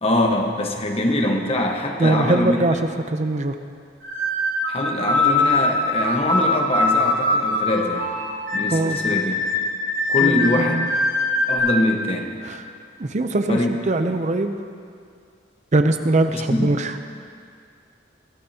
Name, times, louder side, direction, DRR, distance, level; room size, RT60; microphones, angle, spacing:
voice 1, 0.0-2.6 4.7-8.1 8.5-9.4 10.1-10.9 11.5-12.4 13.5-13.7 16.3-16.7, left 1 dB, 35° left, 2 dB, 1.3 m, -23 dB
voice 2, 2.0-2.8 3.1-3.6 8.7-9.0 10.2-10.9 12.4-12.7 13.0-14.5 15.7-17.0, right 2 dB, 40° right, 7 dB, 0.6 m, -21 dB
sound 1, 4.0-11.6, left 2 dB, 85° right, 3.8 m, -22 dB
23.5 x 12.0 x 2.9 m, 2.3 s
head